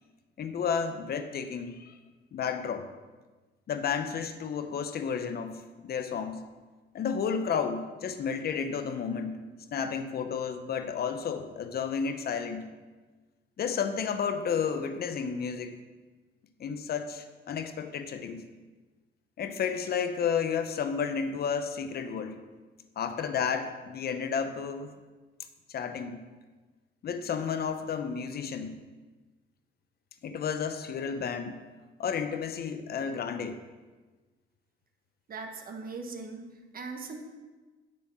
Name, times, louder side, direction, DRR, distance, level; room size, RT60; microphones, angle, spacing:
voice 1, 0.4-1.9 2.3-2.9 3.7-6.4 6.9-9.4 9.7-12.6 13.6-15.7 16.6-18.4 19.4-22.4 23.0-24.9 25.7-26.2 27.0-28.8 30.2-31.6 32.0-33.6, left 6 dB, 50° left, 8 dB, 0.7 m, -32 dB
voice 2, 35.3-37.3, right 4 dB, 45° right, 2 dB, 1.3 m, -40 dB
9.9 x 4.2 x 6.3 m, 1.3 s
cardioid pair, 90°, 20 cm